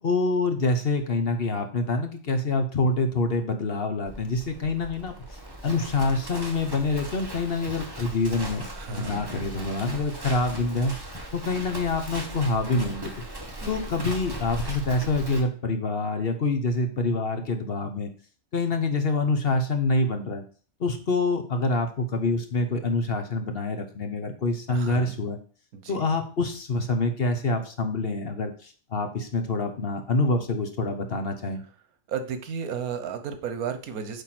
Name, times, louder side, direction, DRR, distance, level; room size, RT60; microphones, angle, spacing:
voice 1, 0.0-10.9 11.3-13.2 13.7-18.1 18.5-20.4 20.8-25.4 25.9-31.6, left 3 dB, 45° left, 7 dB, 1.1 m, -26 dB
Livestock farm animals working animals, 4.1-15.4, right 1 dB, 15° right, 1.3 m, -38 dB
voice 2, 8.7-9.3 13.6-14.1 24.7-25.2 25.7-26.0 32.1-34.2, right 7 dB, 85° right, 9 dB, 1.4 m, -34 dB
8.2 x 3.6 x 5.9 m, 0.41 s
omnidirectional pair, 1.5 m